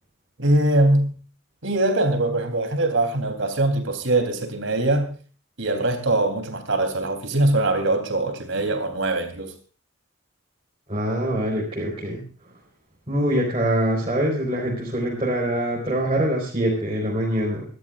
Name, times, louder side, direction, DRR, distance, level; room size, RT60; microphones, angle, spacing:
voice 1, 0.4-1.2 1.6-5.2 5.6-9.5, right 2 dB, 65° right, 3.5 m, -22 dB
voice 2, 10.9-12.2 13.1-17.6, right 1 dB, 30° right, 4.5 m, -24 dB
25.0 x 13.0 x 2.5 m
head